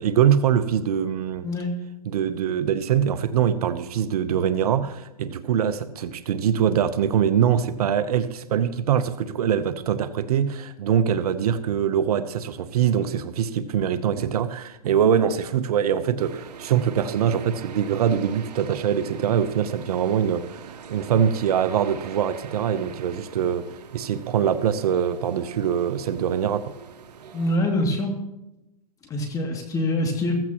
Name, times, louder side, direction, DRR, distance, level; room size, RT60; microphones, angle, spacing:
voice 1, 0.0-1.5 2.1-26.7, right 8 dB, 65° right, 0.9 m, -23 dB
sound 1, 16.2-27.6, right 6 dB, 85° right, 1.2 m, -42 dB
voice 2, 27.3-28.1 29.0-30.3, left 1 dB, 15° left, 2.5 m, -24 dB
15.0 x 15.0 x 3.0 m
hypercardioid pair, 140°, 20 cm